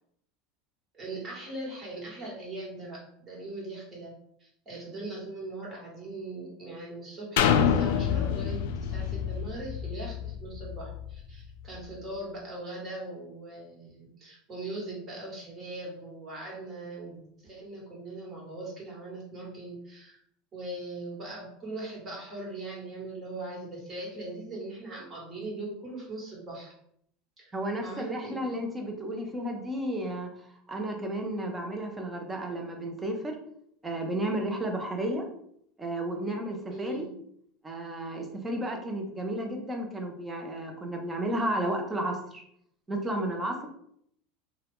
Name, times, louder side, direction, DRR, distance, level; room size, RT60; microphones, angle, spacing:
voice 1, 0.9-4.1 4.4-20.2 20.5-26.7 27.4-28.4 36.7-37.1, right 2 dB, 30° right, -4 dB, 1.5 m, -40 dB
sound 1, 7.4-11.1 11.7-11.8, left 8 dB, 75° left, 0.3 m, -27 dB
voice 2, 27.5-33.4 33.8-35.3 35.8-37.1 37.6-42.4 42.9-43.7, right 1 dB, 15° right, 2 dB, 0.7 m, -32 dB
2.8 x 2.4 x 3.5 m, 0.69 s
supercardioid pair, 115°, 0 cm